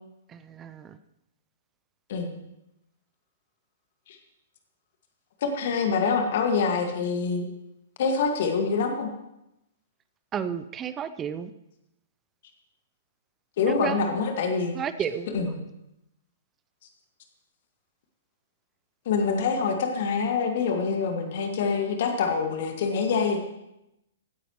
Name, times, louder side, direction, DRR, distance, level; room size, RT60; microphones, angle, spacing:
voice 1, 0.3-1.0 10.3-11.5 13.7-14.2 14.7-15.5, right 8 dB, 20° right, 13 dB, 0.5 m, -32 dB
voice 2, 5.4-7.5 8.0-9.1 13.6-14.7 15.3-15.5 19.1-23.4, left 5 dB, 50° left, 4 dB, 1.9 m, -25 dB
15.5 x 10.0 x 3.1 m, 0.87 s
figure-of-eight pair, 115°, 0 cm